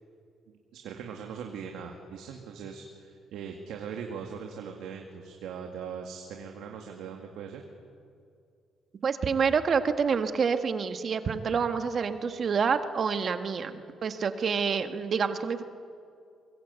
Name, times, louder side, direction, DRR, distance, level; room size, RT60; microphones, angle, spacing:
voice 1, 0.7-7.6, right 7 dB, 85° right, 2 dB, 2.1 m, -40 dB
voice 2, 9.0-15.6, right 6 dB, 50° right, 8 dB, 1.6 m, -27 dB
24.0 x 22.0 x 8.3 m, 2.3 s
cardioid pair, 90°, 0 cm